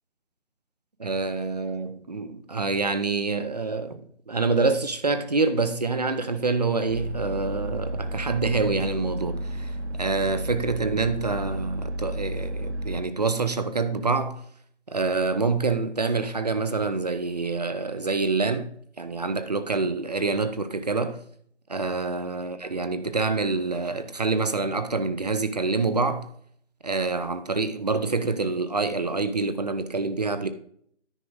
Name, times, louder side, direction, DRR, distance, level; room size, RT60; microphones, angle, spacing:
voice 1, 1.0-14.4 14.9-21.2 21.7-26.3 26.8-30.5, right 3 dB, 35° right, 0.5 m, -26 dB
sound 1, 6.9-13.0, right 1 dB, 65° right, 1.5 m, -32 dB
9.8 x 5.1 x 4.7 m
figure-of-eight pair, 160°, 36 cm